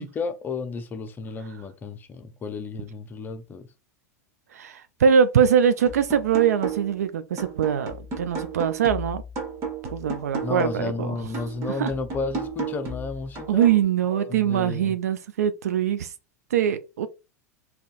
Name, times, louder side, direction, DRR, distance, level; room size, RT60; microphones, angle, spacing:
voice 1, 0.0-3.7 10.4-13.7 14.1-15.0, left 4 dB, 20° left, 0.6 m, -32 dB
voice 2, 4.5-9.2 9.9-11.1 11.8-11.9 13.5-16.1 16.5-17.1, right 8 dB, 65° right, 0.4 m, -22 dB
sound 1, 5.9-7.0 7.4-10.9 11.3-13.9, right 4 dB, 35° right, 1.2 m, -33 dB
3.8 x 2.9 x 2.4 m
figure-of-eight pair, 90°, 9 cm